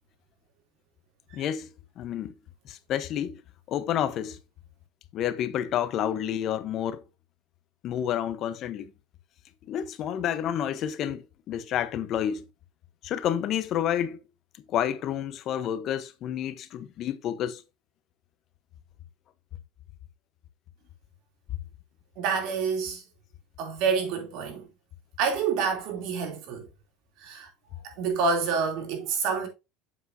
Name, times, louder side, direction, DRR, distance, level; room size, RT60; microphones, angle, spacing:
voice 1, 1.3-1.7 2.0-2.3 2.7-3.4 3.7-4.4 5.1-7.0 7.8-8.9 9.7-12.4 13.0-14.2 14.7-17.6, left 10 dB, 50° left, 1.0 m, -29 dB
voice 2, 22.2-23.0 23.6-24.7 25.2-26.7 27.2-27.5 27.8-29.5, right 5 dB, 65° right, 3.0 m, -28 dB
8.0 x 7.4 x 2.7 m
supercardioid pair, 95°, 0 cm